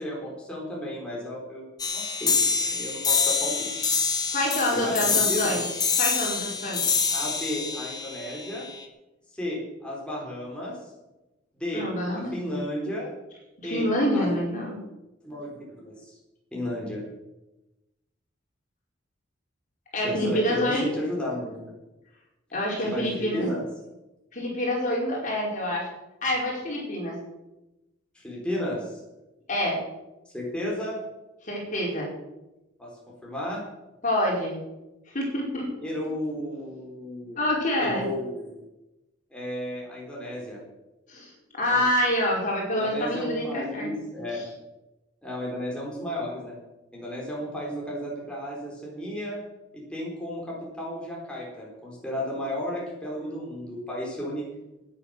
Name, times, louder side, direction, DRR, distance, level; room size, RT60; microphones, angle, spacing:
voice 1, 0.0-3.9 4.7-5.6 7.1-8.7 9.3-10.9 11.6-13.1 13.6-14.3 15.2-16.1 16.5-17.1 20.0-21.6 22.8-23.7 28.1-29.0 30.3-31.0 32.8-32.9 33.2-33.6 35.8-37.4 37.8-38.6 39.3-40.6 41.7-41.8 42.8-44.4 45.2-46.6 46.9-49.4 49.7-54.5, equal, 5° left, -4 dB, 4.1 m, -33 dB
sound 1, 1.8-8.8, left 5 dB, 20° left, 1.4 m, -26 dB
voice 2, 4.3-5.6 6.0-6.8 11.7-12.6 13.6-14.8 19.9-20.9 22.5-23.5 24.3-25.9 26.2-27.2 29.5-29.8 31.4-32.1 34.0-34.6 35.1-35.7 37.4-38.1 41.1-41.3 41.6-43.9 44.3-44.4, left 1 dB, 40° left, -3 dB, 5.1 m, -27 dB
15.5 x 10.0 x 6.6 m, 1.0 s
head